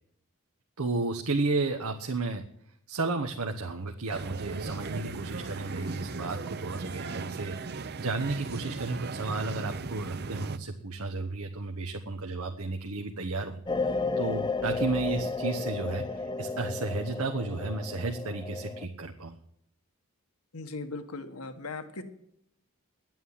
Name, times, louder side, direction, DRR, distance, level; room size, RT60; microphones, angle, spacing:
voice 1, 0.8-2.4 2.9-19.4, right 3 dB, 85° right, 4 dB, 1.1 m, -33 dB
sound 1, 4.1-10.6, right 4 dB, 45° right, 0.6 m, -37 dB
sound 2, 13.7-18.9, left 3 dB, 20° left, 0.7 m, -32 dB
voice 2, 20.5-22.0, left 3 dB, 80° left, 9 dB, 1.4 m, -38 dB
11.5 x 9.2 x 9.2 m, 0.75 s
head